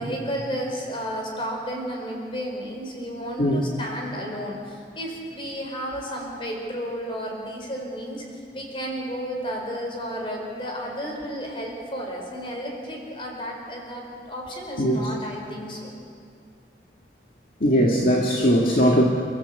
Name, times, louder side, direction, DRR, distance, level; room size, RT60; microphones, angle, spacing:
voice 1, 0.0-15.9, equal, 30° left, 0 dB, 4.8 m, -32 dB
voice 2, 14.8-15.1 17.6-19.0, equal, 55° left, -2 dB, 2.2 m, -19 dB
30.0 x 14.0 x 8.3 m, 2.3 s
head